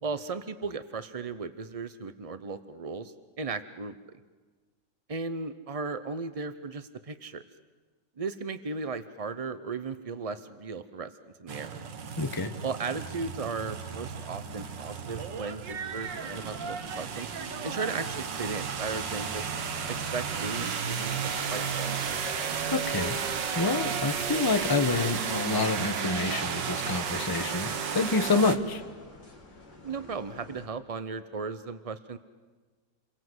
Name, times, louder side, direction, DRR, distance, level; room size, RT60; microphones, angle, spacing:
voice 1, 0.0-4.0 5.1-7.4 8.2-11.1 11.4-11.8 12.6-17.3 17.6-19.5 19.9-22.0 29.8-32.2, right 4 dB, 45° right, 11 dB, 0.4 m, -36 dB
sound 1, 11.5-28.6, right 6 dB, 85° right, 2.1 m, -33 dB
voice 2, 12.2-12.5 22.7-23.2 23.5-28.8, left 3 dB, 15° left, 7 dB, 1.1 m, -28 dB
sound 2, 15.7-30.7, left 2 dB, 60° left, 4.7 m, -48 dB
28.5 x 22.5 x 8.0 m, 1.4 s
omnidirectional pair, 1.9 m